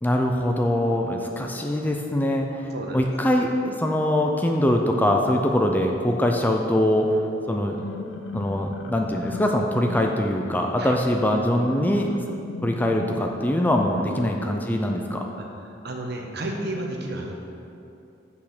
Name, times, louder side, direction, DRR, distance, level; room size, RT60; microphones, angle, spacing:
voice 1, 0.0-2.7 2.9-7.2 7.5-7.8 8.3-12.1 12.6-15.3, left 1 dB, 10° left, 2 dB, 0.5 m, -23 dB
sound 1, 7.6-15.4, left 3 dB, 70° left, 0.6 m, -39 dB
voice 2, 15.8-17.3, right 1 dB, 60° right, 1 dB, 1.1 m, -32 dB
6.4 x 5.8 x 6.5 m, 2.7 s
head